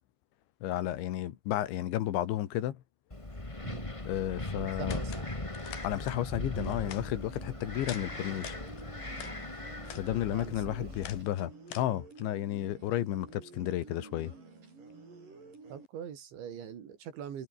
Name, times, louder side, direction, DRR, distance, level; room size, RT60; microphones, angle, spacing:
voice 1, 0.6-2.8 4.1-5.0 5.8-8.6 9.9-14.4, left 13 dB, 80° left, 4.1 m, -32 dB
Wind, 3.1-11.2, left 2 dB, 15° left, 1.0 m, -39 dB
voice 2, 4.6-5.3 10.2-11.0 15.7-17.5, right 8 dB, 80° right, 5.7 m, -43 dB
sound 1, 4.9-5.3 5.5-6.2 6.6-7.4 7.8-8.1 8.3-9.4 9.8-10.1 10.4-12.2, left 11 dB, 60° left, 3.4 m, -46 dB
sound 2, 6.6-15.9, right 4 dB, 45° right, 9.0 m, -51 dB
omnidirectional pair, 5.2 m